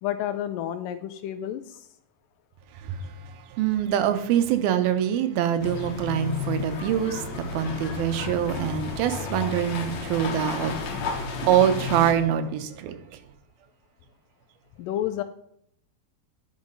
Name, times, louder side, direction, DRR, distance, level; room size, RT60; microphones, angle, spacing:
voice 1, 0.0-1.9 14.8-15.2, left 11 dB, 80° left, 2.0 m, -30 dB
voice 2, 2.8-13.0, right 9 dB, 85° right, 2.7 m, -25 dB
sound 1, 5.6-12.1, left 5 dB, 60° left, 2.1 m, -32 dB
sound 2, 6.8-12.4, right 1 dB, 35° right, 2.4 m, -48 dB
10.5 x 6.2 x 5.3 m
omnidirectional pair, 4.2 m